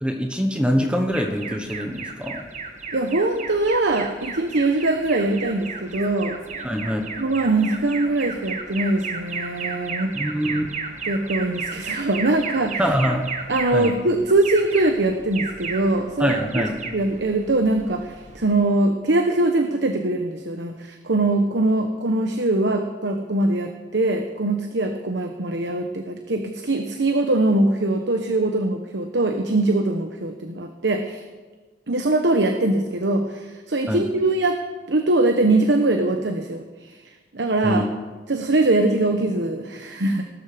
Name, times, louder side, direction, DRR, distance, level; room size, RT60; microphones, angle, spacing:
voice 1, 0.0-2.5 6.6-7.0 10.1-10.7 12.8-13.2 13.7-13.9 16.2-16.9 33.9-34.1 37.6-37.9, equal, 5° right, 4 dB, 1.2 m, -24 dB
Alarm, 1.1-18.7, right 5 dB, 40° right, 1.6 m, -34 dB
voice 2, 2.9-6.4 7.2-10.2 11.1-12.8 13.5-16.4 16.9-31.2 31.9-34.6 34.9-37.0 37.3-37.8 38.3-40.3, right 2 dB, 85° right, 5 dB, 1.1 m, -22 dB
18.5 x 13.0 x 5.1 m, 1.4 s
head